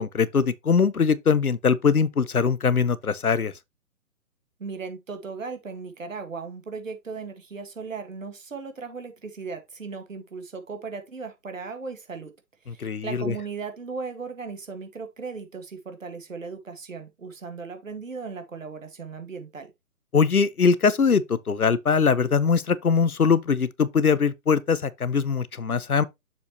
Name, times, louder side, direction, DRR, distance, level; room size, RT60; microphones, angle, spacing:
voice 1, 0.0-3.5 12.7-13.3 20.1-26.0, left 5 dB, 80° left, 0.8 m, -22 dB
voice 2, 4.6-12.3 12.6-19.7, right 4 dB, 60° right, 1.7 m, -37 dB
6.8 x 5.7 x 2.9 m
figure-of-eight pair, 135°, 43 cm